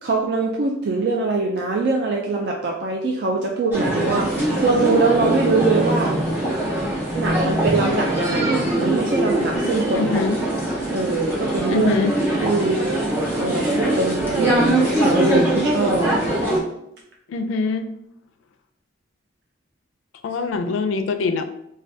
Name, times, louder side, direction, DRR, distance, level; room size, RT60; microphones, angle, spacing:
voice 1, 0.0-6.1 7.1-10.2 10.9-11.9 12.4-12.8 13.4-16.1, right 3 dB, 55° right, -1 dB, 0.3 m, -23 dB
sound 1, 3.7-16.6, right 1 dB, 10° right, 0.7 m, -22 dB
voice 2, 9.9-10.4 11.7-12.1 17.3-17.9 20.2-21.4, left 4 dB, 85° left, 8 dB, 0.3 m, -23 dB
3.3 x 2.2 x 2.6 m, 0.77 s
head